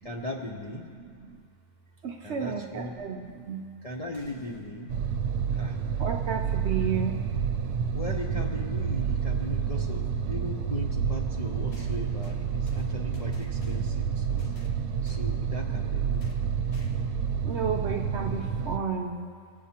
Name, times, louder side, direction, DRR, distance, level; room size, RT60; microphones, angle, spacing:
voice 1, 0.0-0.8 2.2-2.9 3.8-4.9 5.5-5.8 7.9-14.4 15.0-16.2, left 1 dB, 50° left, -1 dB, 0.4 m, -38 dB
voice 2, 1.0-1.4 2.0-3.7 5.0-5.4 6.0-7.2 9.5-9.6 10.3-10.4 11.6-11.7 12.5-13.0 13.2-13.7 14.1-15.0 16.1-16.8 17.4-19.3, right 6 dB, 60° right, 2 dB, 0.7 m, -34 dB
sound 1, 4.1-4.7 6.8-6.9 8.0-8.1 11.7-14.0 14.4-15.3 16.2-16.5 16.7-17.2, right 1 dB, 70° left, 1.5 m, -51 dB
sound 2, 4.9-18.8, right 7 dB, 85° right, 1.1 m, -29 dB
20.5 x 8.2 x 2.9 m, 2.1 s
omnidirectional pair, 1.6 m